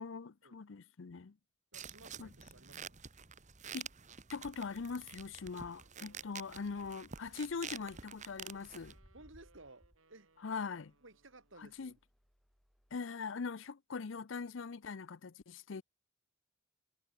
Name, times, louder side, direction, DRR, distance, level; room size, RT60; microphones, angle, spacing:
voice 1, 0.0-1.3 2.2-2.3 3.7-3.9 4.3-8.9 10.4-10.9 11.6-11.9 12.9-15.8, left 5 dB, 65° left, 0.6 m, -42 dB
sound 1, 1.7-8.9, right 7 dB, 35° right, 1.5 m, -49 dB
voice 2, 1.7-3.0 8.5-8.6 9.1-10.3 11.0-12.0, right 2 dB, 70° right, 4.1 m, -58 dB
sound 2, 4.6-11.8, right 3 dB, 90° right, 3.1 m, -69 dB
sound 3, 7.1-7.5 8.6-13.0, equal, ahead, 2.8 m, -66 dB
head